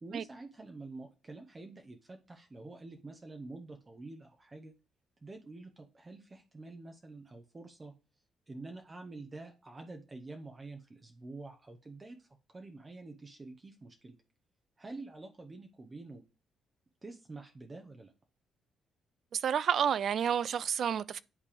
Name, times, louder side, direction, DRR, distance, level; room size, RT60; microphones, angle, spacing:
voice 1, 0.0-4.7 5.2-7.9 8.5-14.2 14.8-16.2 17.0-18.1, right 3 dB, 25° right, 0.8 m, -47 dB
voice 2, 19.3-21.2, right 8 dB, 60° right, 0.3 m, -30 dB
10.0 x 3.4 x 3.4 m
cardioid pair, 90°, 0 cm